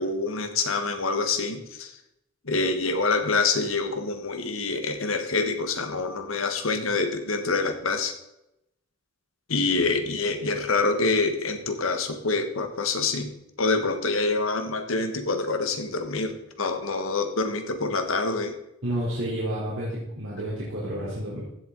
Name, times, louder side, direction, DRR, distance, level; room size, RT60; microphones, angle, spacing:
voice 1, 0.0-1.9 2.4-8.1 9.5-13.3 13.6-18.5, left 3 dB, 80° left, 7 dB, 1.4 m, -26 dB
voice 2, 18.8-21.4, right 1 dB, 70° right, -7 dB, 3.7 m, -30 dB
15.5 x 7.8 x 4.0 m, 0.84 s
head